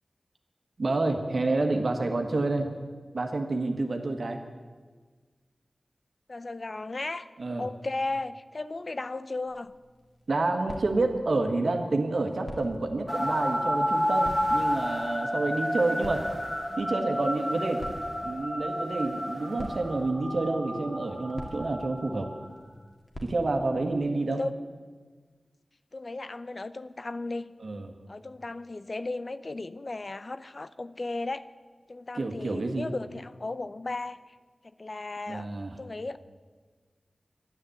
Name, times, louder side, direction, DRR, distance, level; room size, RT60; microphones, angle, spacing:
voice 1, 0.8-2.7 3.1-4.4 7.4-7.7 10.3-16.3 16.8-17.8 18.2-22.3 23.2-24.4 27.6-27.9 32.1-32.9 35.3-35.7, right 2 dB, 75° right, 4 dB, 1.6 m, -28 dB
voice 2, 6.3-7.3 7.6-9.7 24.0-24.5 25.9-27.5 28.1-31.5 31.9-34.2 34.8-35.5 35.8-36.2, left 2 dB, 55° left, 14 dB, 0.5 m, -35 dB
sound 1, 9.5-24.0, equal, 35° left, 2.2 m, -47 dB
sound 2, 13.1-22.5, equal, 15° left, 2.2 m, -31 dB
12.0 x 9.8 x 7.9 m, 1.5 s
cardioid pair, 50°, 0 cm